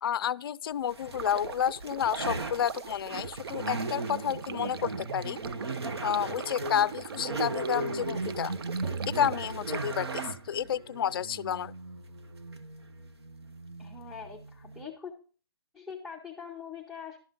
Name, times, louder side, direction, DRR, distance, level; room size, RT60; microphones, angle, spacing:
voice 1, 0.0-5.4 6.0-8.5 9.1-11.7, left 9 dB, 65° left, 0.4 m, -30 dB
sound 1, 0.9-14.8, right 2 dB, 85° right, 1.3 m, -37 dB
Stream, 1.1-10.2, right 7 dB, 65° right, 0.5 m, -42 dB
sound 2, 8.8-10.8, right 5 dB, 30° right, 0.8 m, -41 dB
voice 2, 13.8-15.1 15.7-17.2, left 6 dB, 5° right, 0.8 m, -43 dB
12.0 x 5.6 x 5.1 m
hypercardioid pair, 155°, 13 cm